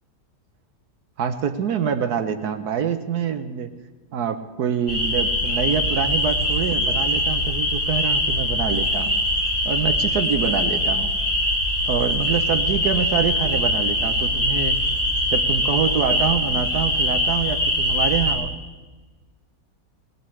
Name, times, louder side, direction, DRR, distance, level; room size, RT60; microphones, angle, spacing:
voice 1, 1.2-3.7 4.1-9.1 9.6-11.1 11.8-14.8 15.3-18.5, right 7 dB, 75° right, 9 dB, 1.4 m, -25 dB
sound 1, 4.9-18.3, left 1 dB, 80° left, 7.1 m, -22 dB
21.0 x 19.5 x 3.3 m, 1.3 s
omnidirectional pair, 1.7 m